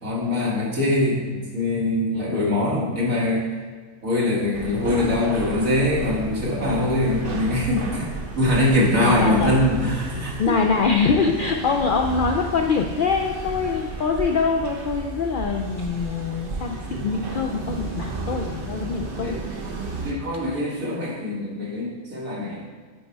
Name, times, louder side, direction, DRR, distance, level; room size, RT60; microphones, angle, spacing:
voice 1, 0.0-3.5 4.0-10.4 19.2-19.4 20.0-22.6, left 1 dB, 75° right, -5 dB, 2.2 m, -23 dB
sound 1, 4.5-20.1, right 3 dB, 45° right, 1.0 m, -33 dB
voice 2, 9.0-9.5 10.4-19.7, left 5 dB, 85° left, 2 dB, 0.4 m, -24 dB
9.2 x 4.2 x 4.6 m, 1.5 s
omnidirectional pair, 1.4 m